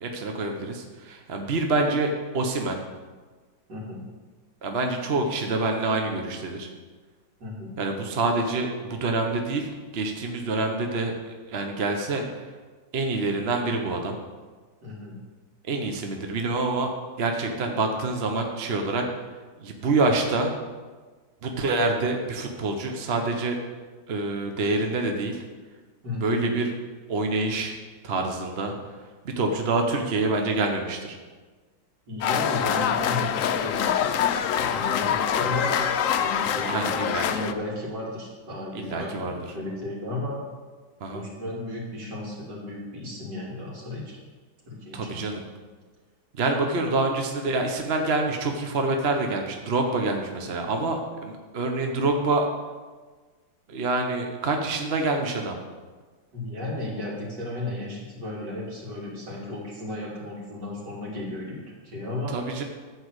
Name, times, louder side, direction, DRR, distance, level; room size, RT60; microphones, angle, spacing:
voice 1, 0.0-2.8 4.6-6.7 7.8-12.5 12.9-14.2 15.6-16.9 17.2-19.0 19.6-20.5 21.4-23.6 24.1-25.4 26.2-26.7 27.1-27.8 28.0-28.7 29.2-31.2 36.6-37.3 38.7-39.4 41.0-41.2 44.9-45.4 46.3-52.5 53.7-55.6 62.3-62.6, right 3 dB, 40° right, 3 dB, 1.0 m, -26 dB
voice 2, 3.7-4.0 7.4-7.7 14.8-15.2 26.0-26.4 32.1-40.4 41.1-44.2 44.7-45.2 56.3-62.3, left 2 dB, 60° right, -4 dB, 3.4 m, -34 dB
sound 1, 32.2-37.5, left 8 dB, 80° left, 0.7 m, -25 dB
14.0 x 4.8 x 8.0 m, 1.4 s
omnidirectional pair, 2.1 m